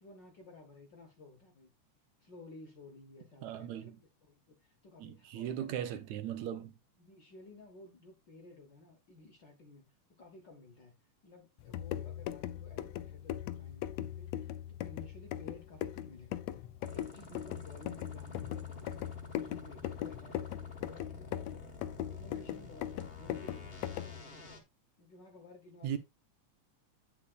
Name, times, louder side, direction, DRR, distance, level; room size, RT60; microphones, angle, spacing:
voice 1, 0.0-1.7 2.2-5.8 7.0-14.5 14.8-21.6 22.1-24.1 25.0-26.0, left 2 dB, 55° left, 1.2 m, -55 dB
voice 2, 3.4-4.0 5.0-6.7 25.8-26.0, right 10 dB, 75° right, 2.2 m, -38 dB
sound 1, 11.6-24.2, left 12 dB, 80° left, 1.5 m, -40 dB
sound 2, 16.8-24.6, left 2 dB, 35° left, 1.0 m, -51 dB
8.7 x 8.3 x 2.4 m
omnidirectional pair, 3.4 m